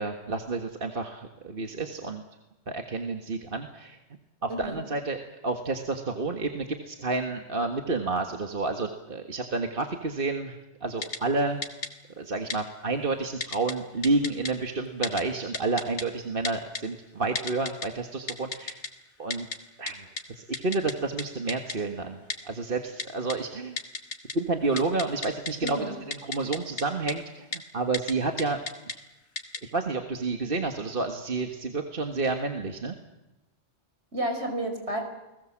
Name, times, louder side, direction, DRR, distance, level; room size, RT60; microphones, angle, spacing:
voice 1, 0.0-2.2 2.7-4.0 4.4-5.2 5.4-11.6 12.2-18.8 19.2-19.5 19.8-22.2 22.5-23.8 24.3-25.8 26.1-28.6 29.6-33.0, right 3 dB, 50° right, 4 dB, 1.9 m, -30 dB
voice 2, 4.5-4.8 25.6-26.0 34.1-35.0, right 1 dB, 70° right, 5 dB, 5.8 m, -31 dB
Typing, 11.0-11.2 11.6-11.9 12.5-12.6 13.4-13.7 14.0-14.5 15.0-15.2 15.5-16.0 16.4-16.8 17.4-17.9 18.3-18.9 19.3-19.6 19.9-20.0 20.2-20.3 20.5-20.9 21.2-21.3 21.5-21.8 22.3-22.4 23.0-23.4 23.8-24.3 24.6-25.7 26.1-26.8 27.1-27.2 27.5-27.6 27.9-28.1 28.4-28.9 29.4-29.6, left 3 dB, 80° left, 2.4 m, -32 dB
29.5 x 20.0 x 7.4 m, 0.98 s
omnidirectional pair, 1.2 m